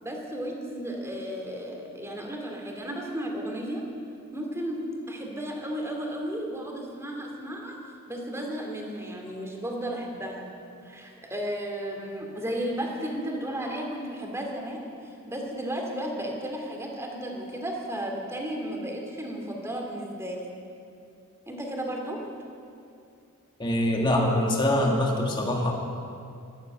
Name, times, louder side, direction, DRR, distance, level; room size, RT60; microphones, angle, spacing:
voice 1, 0.0-3.8 4.3-7.8 8.1-10.5 10.8-20.6 21.5-22.2, equal, 15° right, 1 dB, 2.4 m, -34 dB
voice 2, 23.6-25.7, left 1 dB, 20° left, 0 dB, 1.8 m, -24 dB
13.5 x 12.5 x 8.4 m, 2.5 s
head